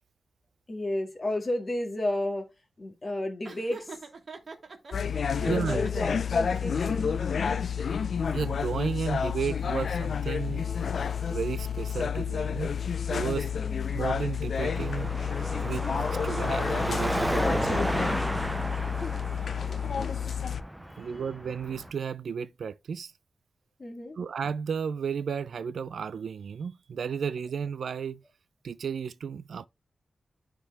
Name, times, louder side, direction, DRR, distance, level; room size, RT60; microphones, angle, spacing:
voice 1, 0.7-2.5 2.8-4.0 5.3-7.2 13.5-13.9 18.7-19.2 19.6-19.8 20.9-21.1 23.8-24.2, left 1 dB, 35° left, 1.8 m, -33 dB
Laughter, 3.4-4.9 5.4-6.3, right 4 dB, 50° right, 1.5 m, -43 dB
sound 1, 4.9-20.6, left 7 dB, 70° left, 0.4 m, -30 dB
voice 2, 5.5-5.8 8.3-10.7 11.3-12.8 13.1-13.5 13.9-15.2 15.6-17.8 21.0-23.1 24.2-28.2 28.6-29.7, right 6 dB, 80° right, 0.4 m, -33 dB
Car passing by / Traffic noise roadway noise / Engine, 14.6-21.9, equal, 5° right, 0.3 m, -32 dB
9.9 x 3.6 x 3.3 m
wide cardioid pair, 95°, 0 cm